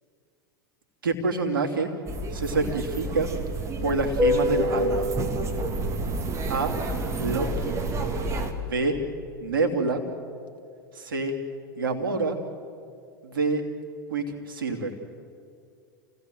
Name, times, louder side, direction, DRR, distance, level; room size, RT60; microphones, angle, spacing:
voice 1, 1.0-1.9 2.3-3.3 3.8-5.1 6.5-6.8 7.2-7.7 8.6-9.0 9.4-10.0 10.9-11.3 11.8-12.4 13.2-13.7 14.1-14.9, right 3 dB, 70° right, 4 dB, 2.8 m, -27 dB
sound 1, 2.1-8.5, right 1 dB, 25° right, 2.2 m, -28 dB
29.0 x 17.0 x 7.8 m, 2.3 s
figure-of-eight pair, 85°, 12 cm